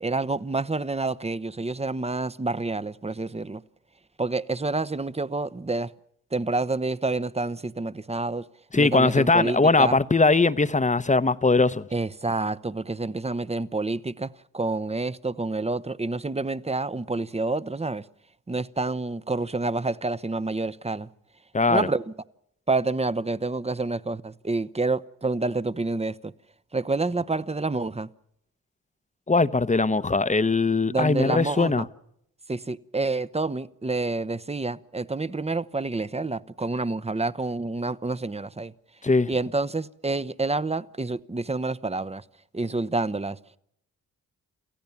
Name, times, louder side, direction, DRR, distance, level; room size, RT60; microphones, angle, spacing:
voice 1, 0.0-3.6 4.2-5.9 6.3-8.4 8.8-10.0 11.9-14.3 14.5-18.0 18.5-21.1 21.7-22.0 22.7-26.3 26.7-28.1 30.9-31.9 32.5-38.7 39.3-42.2 42.5-43.4, right 3 dB, 20° right, 0.8 m, -28 dB
voice 2, 8.7-11.8 21.5-21.9 29.3-31.8 39.0-39.3, left 3 dB, 20° left, 0.9 m, -21 dB
28.5 x 15.0 x 7.1 m
cardioid pair, 55°, 34 cm